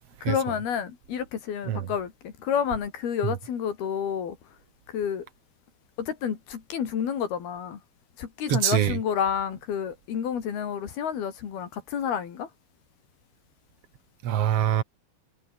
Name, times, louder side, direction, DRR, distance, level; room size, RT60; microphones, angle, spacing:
voice 1, 0.2-4.4 4.9-5.3 6.0-7.8 8.2-12.5, left 8 dB, 80° left, 4.9 m, -30 dB
voice 2, 8.5-9.0 14.2-14.8, right 10 dB, 55° right, 1.8 m, -24 dB
omnidirectional pair, 4.4 m